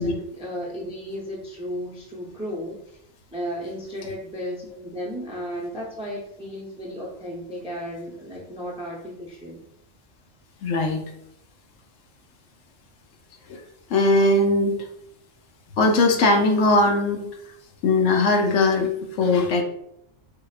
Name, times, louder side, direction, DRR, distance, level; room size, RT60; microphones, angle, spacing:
voice 1, 0.0-3.0 3.3-9.6, equal, 10° right, -4 dB, 0.4 m, -34 dB
voice 2, 10.6-11.0 13.5-13.6 13.9-14.8 15.8-17.3 17.8-18.9 19.2-19.6, left 2 dB, 80° left, 3 dB, 1.0 m, -19 dB
4.8 x 2.2 x 2.4 m, 0.76 s
omnidirectional pair, 1.3 m